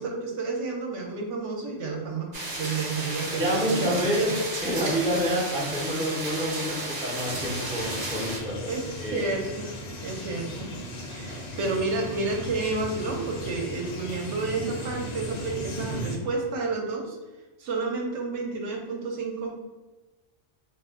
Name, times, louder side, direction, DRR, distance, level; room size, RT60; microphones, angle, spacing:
voice 1, 0.0-4.3 8.7-9.7 10.0-10.7 11.1-17.2 17.6-19.6, right 3 dB, 70° right, 1 dB, 0.9 m, -30 dB
sound 1, 2.3-8.4, right 2 dB, 45° right, 0.6 m, -33 dB
voice 2, 3.3-8.7 9.0-9.2 11.3-11.4, equal, 10° right, -5 dB, 0.4 m, -28 dB
sound 2, 7.2-16.2, equal, 70° left, 1.0 m, -36 dB
2.4 x 2.1 x 3.5 m, 1.2 s
omnidirectional pair, 1.3 m